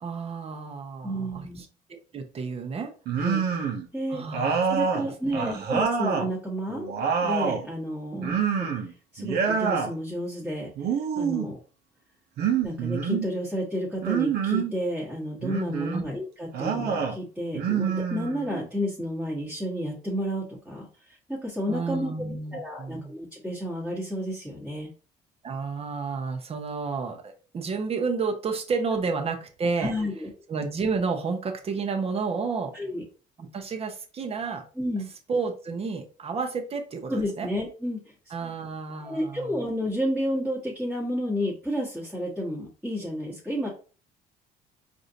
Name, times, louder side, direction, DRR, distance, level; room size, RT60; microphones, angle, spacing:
voice 1, 0.0-1.7 2.1-2.9 4.1-5.6 8.1-8.3 15.9-16.0 21.7-23.1 25.4-29.9 30.5-32.7 33.4-34.6 35.3-37.5 38.3-39.6, right 4 dB, 35° right, 4 dB, 0.9 m, -31 dB
voice 2, 1.0-1.6 3.2-3.7 3.9-4.2 4.7-6.9 7.2-8.4 9.1-10.7 11.2-11.6 12.6-22.1 22.5-24.9 29.8-30.3 32.7-33.0 34.8-35.1 37.1-38.3 39.0-43.7, equal, 5° right, -6 dB, 1.4 m, -31 dB
sound 1, 3.1-3.9 4.3-6.3 6.7-7.7 8.2-8.9 9.2-9.9 10.8-11.5 12.4-13.3 14.0-14.7 15.4-16.0 16.5-17.2 17.5-18.7, right 6 dB, 70° right, 0.8 m, -26 dB
4.8 x 2.6 x 2.8 m, 0.37 s
cardioid pair, 110°, 17 cm